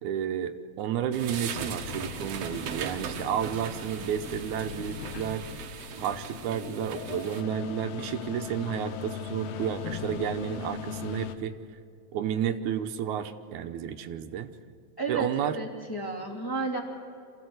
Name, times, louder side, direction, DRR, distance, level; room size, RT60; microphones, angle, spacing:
voice 1, 0.0-5.4 6.0-11.5 12.1-14.5 15.1-15.6, right 9 dB, 85° right, 9 dB, 2.2 m, -31 dB
sound 1, 1.1-7.4, right 7 dB, 65° right, 2.0 m, -39 dB
sound 2, 1.5-11.4, left 9 dB, 70° left, 1.9 m, -39 dB
voice 2, 15.0-16.8, right 3 dB, 10° left, -1 dB, 2.2 m, -32 dB
27.0 x 15.5 x 7.9 m, 2.4 s
omnidirectional pair, 3.4 m